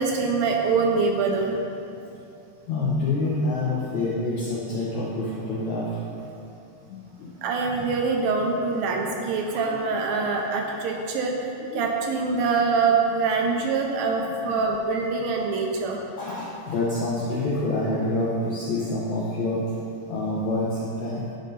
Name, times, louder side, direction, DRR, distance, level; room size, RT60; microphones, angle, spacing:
voice 1, 0.0-1.6 7.4-11.3 11.7-16.0, right 4 dB, 80° right, 1 dB, 2.3 m, -24 dB
voice 2, 2.7-6.0 7.0-7.3 9.6-9.8 11.7-11.8 14.5-14.6 16.2-19.8 20.1-21.3, left 2 dB, 75° left, -6 dB, 1.7 m, -27 dB
10.5 x 3.9 x 5.3 m, 2.6 s
omnidirectional pair, 4.4 m